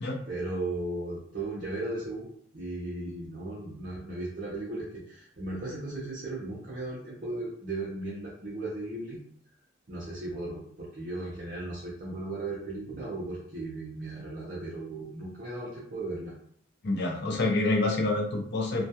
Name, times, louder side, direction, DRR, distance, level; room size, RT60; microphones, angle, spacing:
voice 1, 0.3-9.2 9.9-16.3, right 2 dB, 45° right, -7 dB, 0.5 m, -36 dB
voice 2, 16.8-18.8, left 2 dB, 55° left, 1 dB, 0.5 m, -27 dB
2.2 x 2.2 x 2.7 m, 0.63 s
head